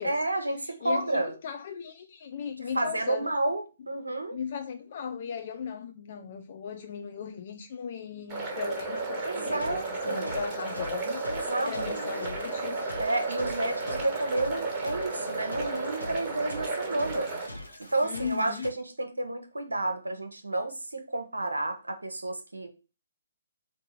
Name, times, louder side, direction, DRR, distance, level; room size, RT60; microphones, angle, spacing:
voice 1, 0.0-1.3 2.6-4.4 9.2-10.4 11.3-12.3 13.0-17.3 17.8-22.7, right 2 dB, 75° right, 0.7 m, -31 dB
voice 2, 0.6-3.3 4.3-12.8 18.0-18.7, left 7 dB, 40° left, 0.3 m, -37 dB
sound 1, 8.3-17.5, right 3 dB, 20° right, 1.1 m, -33 dB
sound 2, 9.4-18.7, left 1 dB, 75° left, 0.8 m, -44 dB
3.6 x 2.6 x 4.3 m
figure-of-eight pair, 135°, 0 cm